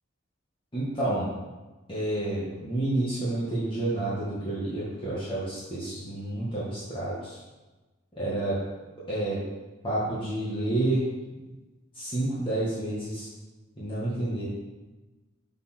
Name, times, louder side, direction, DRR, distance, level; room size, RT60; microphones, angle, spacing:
voice 1, 0.7-1.3 1.9-7.4 8.2-8.6 9.1-9.4 9.8-11.0 11.9-13.3 13.8-14.4, right 1 dB, 25° left, -9 dB, 1.8 m, -29 dB
7.2 x 4.2 x 6.2 m, 1.2 s
head